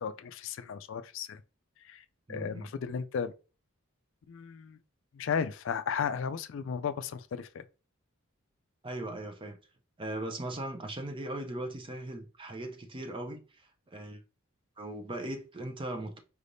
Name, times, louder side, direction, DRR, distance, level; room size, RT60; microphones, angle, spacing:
voice 1, 0.0-1.4 1.8-3.3 4.3-4.8 5.1-7.6, left 6 dB, 60° left, 0.3 m, -35 dB
voice 2, 2.3-2.7 8.8-9.6 10.0-14.2 14.8-16.2, right 1 dB, 25° right, 0.6 m, -39 dB
4.8 x 3.4 x 2.6 m
head